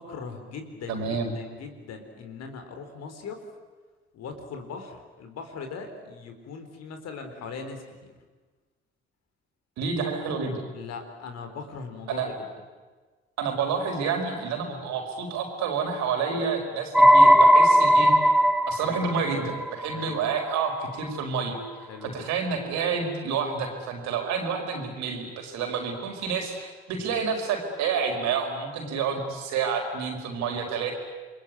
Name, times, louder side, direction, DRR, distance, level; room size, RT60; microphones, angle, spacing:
voice 1, 0.0-3.4 4.1-7.8 10.7-12.5 18.8-19.0 19.9-20.3 21.9-22.3 27.0-27.2, left 5 dB, 60° left, 6 dB, 4.3 m, -40 dB
voice 2, 0.9-1.3 9.8-10.6 12.1-12.3 13.4-18.1 18.7-21.6 22.0-30.9, right 5 dB, 70° right, 3 dB, 5.0 m, -29 dB
sound 1, 16.9-20.3, equal, ahead, 1.6 m, -17 dB
29.0 x 22.0 x 9.5 m, 1.4 s
hypercardioid pair, 45°, 29 cm